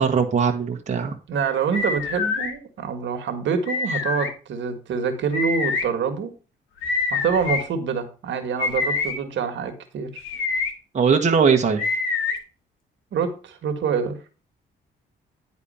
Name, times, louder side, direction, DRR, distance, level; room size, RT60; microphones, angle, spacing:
voice 1, 0.0-1.2 10.9-11.9, right 6 dB, 35° right, 2 dB, 1.4 m, -20 dB
voice 2, 1.3-6.3 7.1-10.2 13.1-14.2, right 6 dB, 70° right, 7 dB, 1.7 m, -26 dB
sound 1, 1.7-2.5 3.7-4.3 5.3-5.8 6.8-7.6 8.6-9.1 10.2-10.7 11.8-12.4, left 4 dB, 85° left, 1.7 m, -25 dB
10.0 x 4.3 x 5.5 m, 0.35 s
cardioid pair, 90°, 20 cm